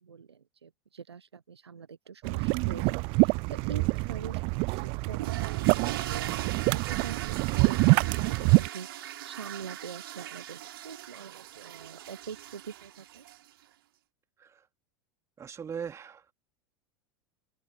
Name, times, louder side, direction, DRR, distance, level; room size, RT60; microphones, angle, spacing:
voice 1, 0.0-5.2 5.5-13.2, right 6 dB, 75° right, 0.9 m, -44 dB
sound 1, 2.2-8.7, right 30 dB, 40° right, 0.6 m, -26 dB
voice 2, 3.7-4.0 14.4-14.7 15.4-16.3, right 7 dB, 20° right, 2.9 m, -40 dB
sound 2, 5.2-13.6, right 13 dB, 60° right, 2.8 m, -40 dB
open air
figure-of-eight pair, 85°, 14 cm